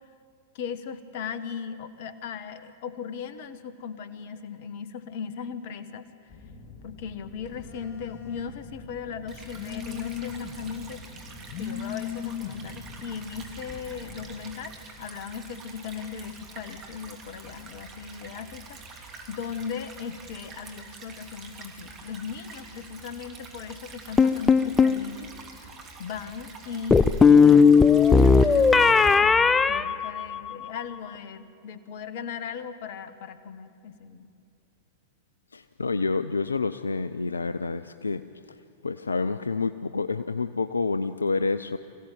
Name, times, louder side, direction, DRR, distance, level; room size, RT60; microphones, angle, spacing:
voice 1, 0.5-6.1 6.8-11.0 11.6-25.3 26.0-28.8 29.2-34.3, left 7 dB, 55° left, 12 dB, 1.4 m, -38 dB
Telephone, 6.3-14.4, left 8 dB, 35° left, 2.9 m, -39 dB
Stream / Trickle dribble, 9.3-29.1, right 4 dB, 30° right, 3.1 m, -46 dB
sound 1, 24.2-25.0 26.9-30.7, left 5 dB, 15° left, 0.6 m, -17 dB
voice 2, 35.5-38.2 38.8-41.8, left 4 dB, 85° left, 12 dB, 0.5 m, -28 dB
24.5 x 15.5 x 9.3 m, 2.5 s
hypercardioid pair, 100°, 0 cm